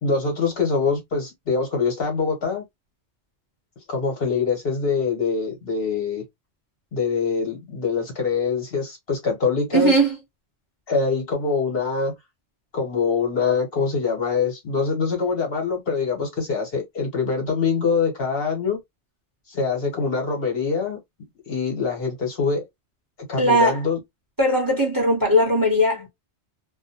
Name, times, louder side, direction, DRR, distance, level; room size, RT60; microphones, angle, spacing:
voice 1, 0.0-2.6 3.9-6.2 6.9-9.9 10.9-12.1 12.7-18.8 19.5-21.0 21.5-22.6 23.3-24.0, left 5 dB, 60° left, 1.1 m, -24 dB
voice 2, 9.7-10.1 23.4-23.8 24.4-26.1, equal, 20° right, 1.0 m, -19 dB
2.4 x 2.1 x 2.7 m
omnidirectional pair, 1.2 m